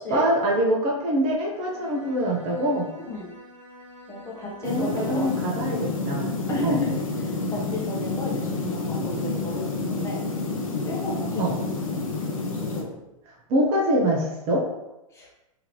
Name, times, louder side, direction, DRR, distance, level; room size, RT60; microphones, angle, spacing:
voice 1, 0.1-2.9 4.6-6.3 6.6-6.8 11.4-11.6 13.5-14.6, right 1 dB, 35° right, -1 dB, 0.8 m, -24 dB
Bowed string instrument, 1.5-5.7, left 1 dB, 65° right, 1.3 m, -47 dB
voice 2, 4.1-5.3 6.5-7.0 7.5-10.2 10.8-11.5 12.6-12.9 15.1-15.3, left 1 dB, 15° left, -3 dB, 1.0 m, -33 dB
sound 1, 4.6-12.8, left 3 dB, 80° left, 0.7 m, -29 dB
3.7 x 2.9 x 3.0 m, 0.95 s
figure-of-eight pair, 100°, 17 cm